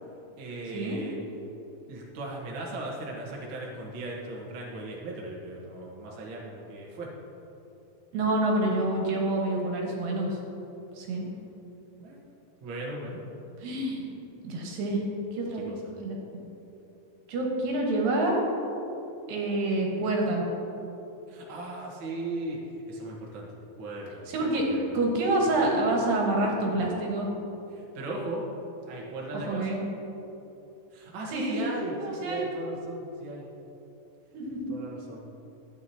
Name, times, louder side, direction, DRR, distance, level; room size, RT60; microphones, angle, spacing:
voice 1, 0.4-1.2 1.9-7.1 12.0-12.2 12.6-13.2 14.9-15.0 15.5-15.9 21.3-23.5 23.8-24.3 24.6-25.0 27.7-28.4 28.9-29.8 30.9-33.4 34.7-35.2, right 2 dB, 60° right, -3 dB, 1.3 m, -37 dB
voice 2, 8.1-10.4 11.0-11.3 13.6-14.0 14.4-15.0 15.3-15.6 16.0-16.2 17.3-18.5 19.3-20.4 24.3-27.3 29.5-29.8 31.3-31.6 32.0-32.5 34.3-34.7, right 2 dB, 75° right, -1 dB, 2.9 m, -27 dB
13.0 x 9.1 x 2.8 m, 3.0 s
omnidirectional pair, 4.2 m